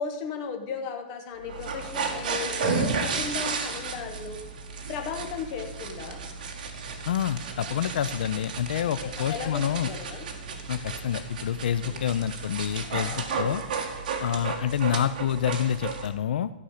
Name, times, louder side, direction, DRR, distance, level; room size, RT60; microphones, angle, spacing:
voice 1, 0.0-4.4 4.9-6.2 9.0-10.3 11.8-12.0 13.3-13.5, left 5 dB, 30° left, 5 dB, 1.2 m, -35 dB
sound 1, 1.4-16.1, right 5 dB, 60° right, 1.8 m, -33 dB
voice 2, 7.1-9.9 10.7-13.6 14.2-16.5, left 9 dB, 75° left, 14 dB, 0.4 m, -28 dB
13.0 x 5.7 x 6.4 m, 0.97 s
supercardioid pair, 175°, 5 cm